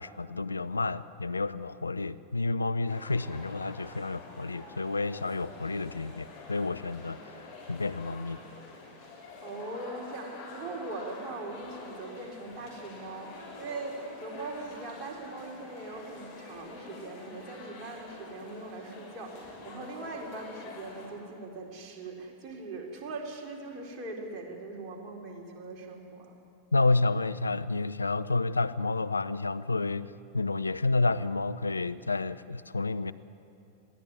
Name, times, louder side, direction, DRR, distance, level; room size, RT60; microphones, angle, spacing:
voice 1, 0.0-8.4 26.7-33.1, left 3 dB, 80° left, 13 dB, 0.5 m, -30 dB
sound 1, 2.9-21.1, left 3 dB, 45° left, 6.5 m, -47 dB
voice 2, 9.4-26.4, right 2 dB, 30° right, -1 dB, 4.0 m, -41 dB
21.0 x 15.5 x 9.5 m, 2.6 s
figure-of-eight pair, 90°, 0 cm